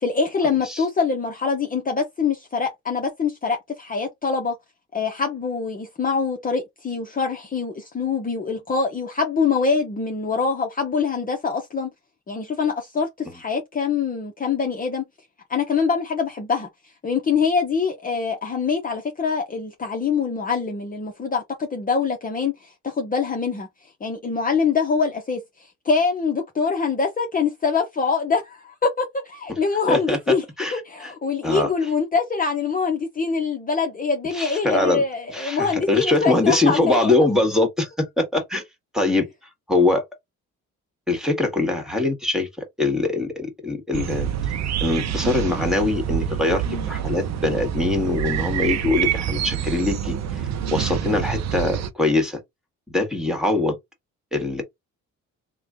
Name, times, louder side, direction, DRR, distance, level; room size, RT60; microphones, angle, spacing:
voice 1, 0.0-4.5 4.9-11.9 12.3-15.0 15.5-16.7 17.0-23.7 24.0-30.4 30.7-37.1 46.7-46.9 50.6-50.8, left 5 dB, 30° left, 0.8 m, -24 dB
voice 2, 34.3-35.0 35.3-37.9 38.2-38.6 38.9-39.3 39.7-40.0 41.1-42.5 42.8-44.5 44.8-50.2 50.7-52.4 52.9-53.8 54.3-54.6, left 2 dB, ahead, 1.5 m, -22 dB
sound 1, 43.9-51.9, right 9 dB, 60° right, 0.6 m, -26 dB
3.2 x 2.2 x 3.6 m
cardioid pair, 90°, 30 cm